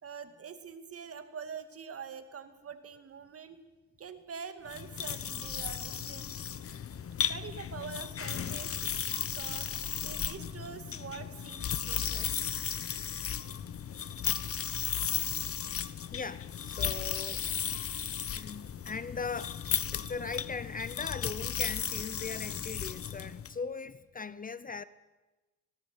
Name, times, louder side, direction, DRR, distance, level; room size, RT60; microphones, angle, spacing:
voice 1, 0.0-3.6 4.0-6.3 7.2-9.7 10.0-12.4, right 6 dB, 50° right, 2.5 m, -45 dB
sound 1, 4.7-23.5, left 9 dB, 50° left, 1.1 m, -35 dB
voice 2, 16.1-17.5 17.7-17.8 18.3-19.6 19.9-24.8, left 5 dB, 30° left, 0.7 m, -39 dB
19.0 x 18.0 x 9.0 m
cardioid pair, 90°, 30 cm